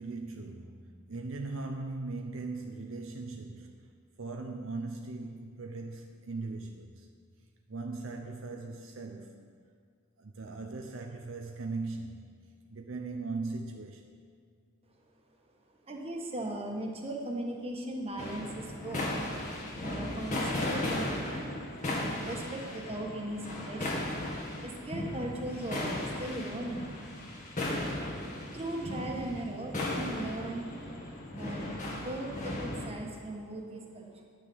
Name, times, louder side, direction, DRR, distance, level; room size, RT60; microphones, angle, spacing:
voice 1, 0.0-3.8 4.2-7.1 7.7-9.5 10.2-12.3 12.7-14.1, right 3 dB, 65° right, 0.7 m, -39 dB
voice 2, 15.9-19.3 19.8-21.5 22.2-24.1 24.6-26.9 28.5-30.7 31.3-34.2, right 1 dB, 30° right, 1.4 m, -38 dB
sound 1, 18.2-32.9, left 1 dB, 40° left, 1.8 m, -36 dB
10.0 x 6.2 x 7.8 m
head